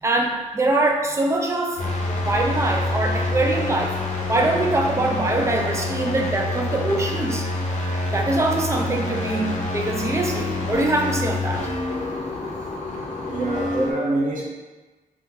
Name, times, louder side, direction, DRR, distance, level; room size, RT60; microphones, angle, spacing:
voice 1, 0.0-1.8 2.3-4.0 4.3-7.5 8.1-11.7, right 2 dB, 20° right, 1 dB, 0.4 m, -23 dB
sound 1, 1.8-13.9, left 2 dB, 60° left, 0.6 m, -27 dB
voice 2, 13.3-14.5, right 2 dB, 75° right, -3 dB, 0.7 m, -25 dB
3.6 x 2.3 x 2.7 m, 1.2 s
wide cardioid pair, 130°, 14 cm